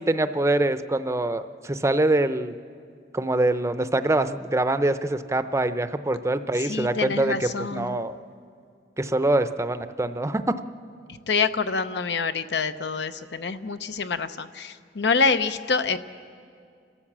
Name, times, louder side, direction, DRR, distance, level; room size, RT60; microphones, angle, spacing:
voice 1, 0.0-2.6 3.1-8.1 9.0-10.4, right 2 dB, 15° right, 11 dB, 0.6 m, -24 dB
voice 2, 6.6-8.0 11.3-16.0, left 4 dB, 75° left, 11 dB, 0.8 m, -26 dB
29.5 x 13.0 x 7.4 m, 2.3 s
head